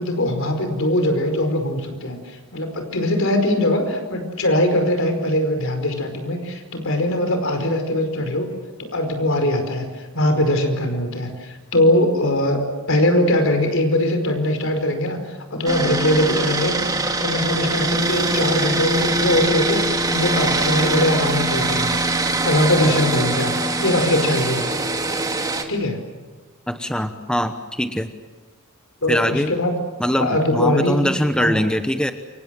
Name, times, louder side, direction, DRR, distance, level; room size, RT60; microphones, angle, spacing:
voice 1, 0.0-8.5 8.8-16.8 17.2-22.0 22.4-24.7 25.7-26.0 29.0-29.8 30.1-31.1 31.4-31.5, left 1 dB, 65° left, 6 dB, 5.0 m, -21 dB
sound 1, 15.7-25.6, right 2 dB, 15° right, 2.3 m, -22 dB
voice 2, 26.7-28.1 29.1-29.5 30.0-32.1, equal, 5° left, 7 dB, 1.0 m, -22 dB
28.5 x 25.0 x 7.7 m, 1.4 s
head